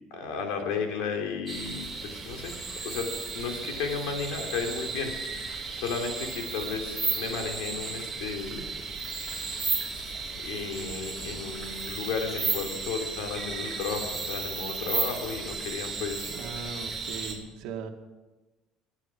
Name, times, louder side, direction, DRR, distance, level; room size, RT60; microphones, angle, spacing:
voice 1, 0.1-2.5 2.8-8.7 9.8-10.0 10.4-16.3, left 5 dB, 85° left, 3 dB, 3.3 m, -34 dB
sound 1, 1.5-17.3, right 4 dB, 10° right, 3.2 m, -34 dB
voice 2, 16.3-17.9, right 6 dB, 70° right, 5 dB, 1.9 m, -39 dB
24.0 x 9.9 x 6.1 m, 1.2 s
cardioid pair, 160°, 0 cm